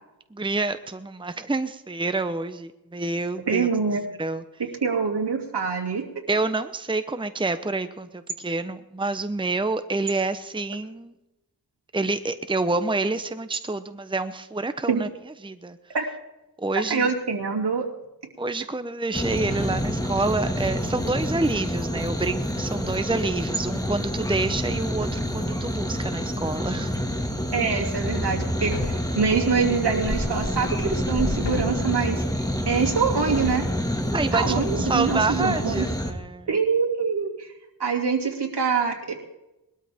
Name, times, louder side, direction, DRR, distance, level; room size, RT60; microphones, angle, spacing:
voice 1, 0.3-3.7 4.2-4.4 6.3-11.2 11.9-15.1 15.4-15.8 16.6-17.1 18.4-26.9 34.1-36.5, right 3 dB, 10° right, 10 dB, 0.9 m, -28 dB
voice 2, 3.5-4.0 4.8-6.0 14.9-15.0 15.9-16.0 16.7-17.9 27.5-32.2 32.7-33.6 34.3-35.9 36.5-37.5 37.8-39.1, right 5 dB, 75° right, 0 dB, 2.8 m, -25 dB
sound 1, 19.1-36.1, equal, 10° left, 1.9 m, -28 dB
sound 2, 28.7-29.2 31.4-31.9 33.3-33.7, left 2 dB, 85° left, 2.3 m, -33 dB
21.0 x 13.0 x 3.6 m, 0.95 s
cardioid pair, 55°, 40 cm